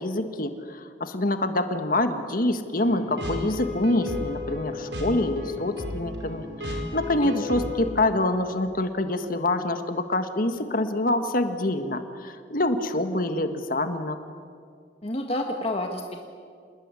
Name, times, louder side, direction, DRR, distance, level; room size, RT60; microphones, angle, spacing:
voice 1, 0.0-14.2, left 1 dB, 50° left, 8 dB, 1.7 m, -26 dB
sound 1, 2.7-7.9, left 2 dB, 75° right, 4.9 m, -33 dB
voice 2, 15.0-16.2, left 1 dB, 35° left, 3 dB, 1.6 m, -29 dB
27.5 x 20.5 x 9.9 m, 2.2 s
head